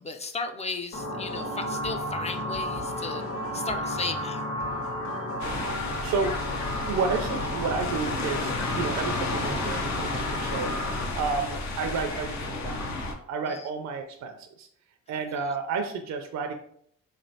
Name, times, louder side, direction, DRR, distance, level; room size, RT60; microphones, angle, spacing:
voice 1, 0.0-3.2 3.5-4.5 13.5-13.7 15.1-15.4, left 4 dB, 20° left, 7 dB, 0.4 m, -35 dB
sound 1, 0.9-11.0, left 1 dB, 45° left, 1.3 m, -33 dB
sound 2, 1.3-11.1, left 3 dB, 85° left, 1.3 m, -45 dB
sound 3, 5.4-13.1, left 3 dB, 65° left, 0.8 m, -32 dB
voice 2, 5.8-6.3 6.8-10.7 11.0-12.9 13.3-14.7 15.1-16.5, right 5 dB, 65° right, 4 dB, 0.5 m, -31 dB
3.7 x 3.2 x 2.7 m, 0.65 s
cardioid pair, 90°, 30 cm